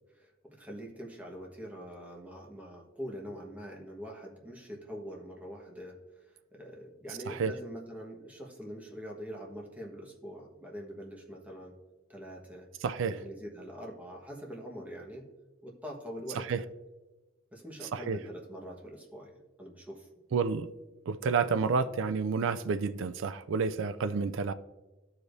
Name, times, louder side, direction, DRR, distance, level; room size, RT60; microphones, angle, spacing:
voice 1, 0.1-11.8 12.1-12.7 13.0-15.3 15.6-16.7 17.5-20.1, equal, 10° right, 1.3 m, -44 dB
voice 2, 12.8-13.1 16.4-16.6 17.9-18.2 20.3-20.7 21.1-24.5, right 5 dB, 70° right, 0.4 m, -30 dB
14.0 x 4.9 x 2.6 m
head